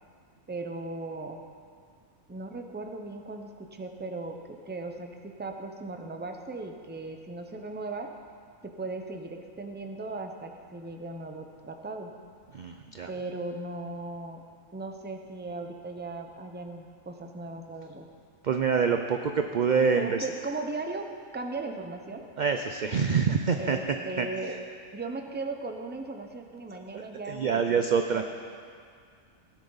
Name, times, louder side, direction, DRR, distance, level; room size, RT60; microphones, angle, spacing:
voice 1, 0.5-1.4 2.3-8.1 8.6-12.1 13.1-14.4 14.7-18.1 19.9-21.1 21.3-22.2 23.6-24.6 24.9-28.2, right 3 dB, 10° right, 4 dB, 0.6 m, -37 dB
voice 2, 12.5-13.1 18.4-20.2 22.4-23.8 24.2-24.3 26.9-28.2, right 6 dB, 60° right, 5 dB, 0.5 m, -26 dB
17.0 x 10.5 x 4.0 m, 2.1 s
omnidirectional pair, 1.4 m